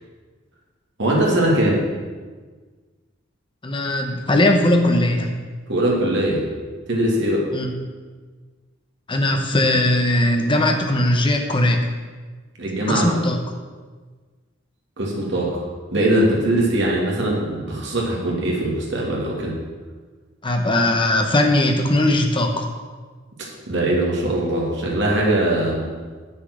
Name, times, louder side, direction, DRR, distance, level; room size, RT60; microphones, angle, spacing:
voice 1, 1.0-1.8 5.7-6.4 6.9-7.5 12.6-13.0 15.0-15.6 15.9-19.6 23.7-25.9, right 1 dB, 60° right, -3 dB, 2.4 m, -21 dB
voice 2, 3.6-5.4 7.5-7.7 9.1-11.8 12.9-13.4 20.4-22.7, left 1 dB, 25° left, 3 dB, 1.0 m, -19 dB
7.5 x 7.0 x 6.3 m, 1.4 s
head